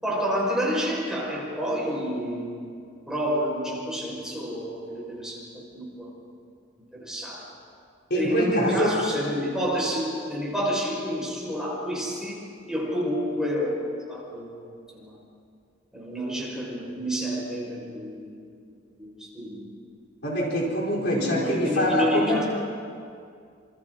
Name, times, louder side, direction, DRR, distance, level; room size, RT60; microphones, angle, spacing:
voice 1, 0.0-2.6 3.1-6.1 6.9-7.5 8.1-14.5 14.9-15.2 15.9-18.5 19.0-19.7 21.0-22.4, equal, 5° right, -5 dB, 6.1 m, -29 dB
voice 2, 8.1-9.0 20.2-22.4, equal, 55° left, -3 dB, 4.4 m, -24 dB
28.0 x 27.5 x 4.1 m, 2.3 s
head